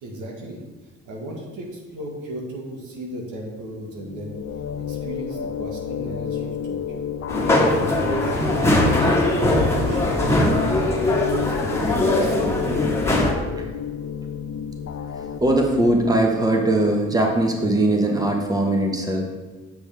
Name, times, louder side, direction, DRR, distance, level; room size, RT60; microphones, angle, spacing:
voice 1, 0.0-0.6 1.0-4.4 4.8-7.0 7.8-9.2 9.6-10.7 11.1-13.1, right 1 dB, 85° right, -1 dB, 1.6 m, -36 dB
sound 1, 3.8-15.4, left 8 dB, 50° left, 0.5 m, -30 dB
sound 2, 7.3-13.3, left 1 dB, 10° left, 1.5 m, -21 dB
voice 2, 15.4-19.3, right 1 dB, 10° right, 1 dB, 1.2 m, -20 dB
8.1 x 6.2 x 3.5 m, 1.2 s
cardioid pair, 90°, 30 cm